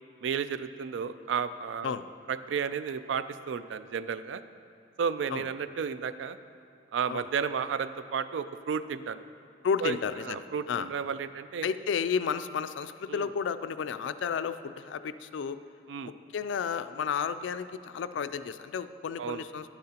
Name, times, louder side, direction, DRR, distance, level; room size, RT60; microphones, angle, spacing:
voice 1, 0.2-1.9 2.3-4.4 5.0-6.4 6.9-9.2 9.8-10.0 10.2-11.7 13.1-13.3 15.9-16.1 19.2-19.4, right 6 dB, 90° right, 13 dB, 0.4 m, -32 dB
voice 2, 9.6-10.9 11.6-15.6 16.0-19.7, left 6 dB, 90° left, 12 dB, 0.3 m, -32 dB
10.5 x 10.5 x 2.9 m, 2.3 s
head